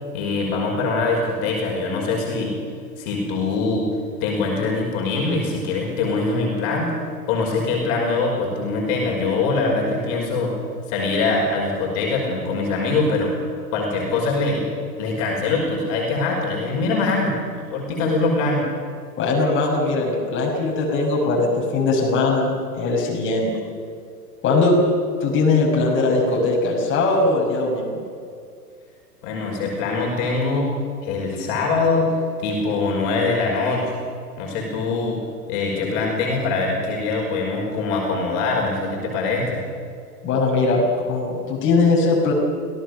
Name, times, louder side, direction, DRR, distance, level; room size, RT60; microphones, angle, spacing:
voice 1, 0.1-2.5 3.0-3.9 4.2-6.9 7.3-10.5 10.9-13.3 13.7-14.7 15.0-18.6 29.2-30.7 31.0-34.0 34.4-35.2 35.5-39.6, left 3 dB, 40° left, -1 dB, 5.6 m, -23 dB
voice 2, 19.2-23.5 24.4-24.8 25.2-28.0 40.2-42.3, left 3 dB, 25° left, -2 dB, 5.9 m, -20 dB
26.0 x 18.0 x 6.8 m, 2.3 s
figure-of-eight pair, 105°, 49 cm